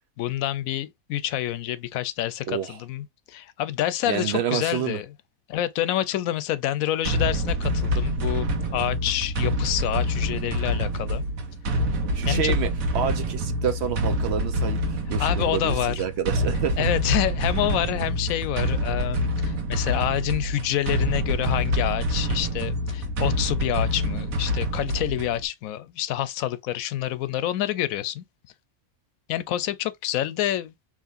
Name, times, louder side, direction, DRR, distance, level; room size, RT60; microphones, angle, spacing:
voice 1, 0.2-5.1 5.5-11.2 12.3-12.5 15.2-16.0 16.8-28.2 29.3-30.7, left 13 dB, 90° left, 1.0 m, -27 dB
voice 2, 2.5-2.8 4.1-5.0 12.1-16.9, right 8 dB, 60° right, 0.8 m, -28 dB
sound 1, 7.0-25.5, equal, 90° right, 1.4 m, -26 dB
4.8 x 3.0 x 2.5 m
omnidirectional pair, 1.4 m